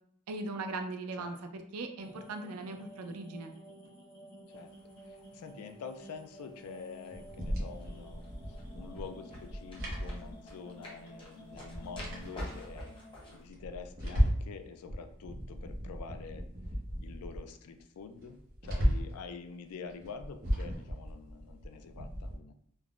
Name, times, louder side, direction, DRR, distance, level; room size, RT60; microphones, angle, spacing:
voice 1, 0.3-3.5, right 3 dB, 85° right, 6 dB, 0.4 m, -39 dB
sound 1, 2.0-13.4, equal, 70° left, 0.9 m, -53 dB
sound 2, 4.5-13.5, equal, 25° left, 0.7 m, -50 dB
voice 2, 5.0-8.2 8.7-12.9 13.3-16.5 17.0-18.4 18.6-22.5, left 5 dB, 85° left, 7 dB, 0.3 m, -46 dB
sound 3, 7.1-10.8 11.1-11.2 11.5-12.8 13.3-14.6 14.9-17.5 17.8-17.9 18.2-19.2 19.9-22.4, equal, 45° right, 0.7 m, -35 dB
3.3 x 2.0 x 2.3 m, 0.66 s
head